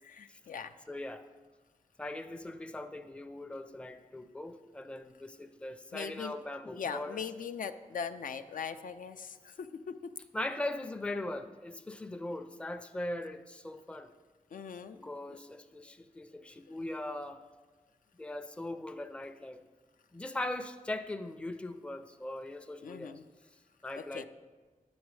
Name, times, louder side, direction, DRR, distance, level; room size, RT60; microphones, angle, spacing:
voice 1, 0.0-0.7 5.9-6.3 6.7-10.1 14.5-15.4 22.8-23.2 24.1-24.3, left 6 dB, 75° left, 9 dB, 0.4 m, -40 dB
voice 2, 0.9-1.3 2.0-7.3 10.3-14.1 15.0-17.4 18.1-19.6 20.1-23.1 23.8-24.3, left 1 dB, 10° left, 8 dB, 0.4 m, -40 dB
10.0 x 7.0 x 3.2 m, 1.3 s
wide cardioid pair, 90°, 14 cm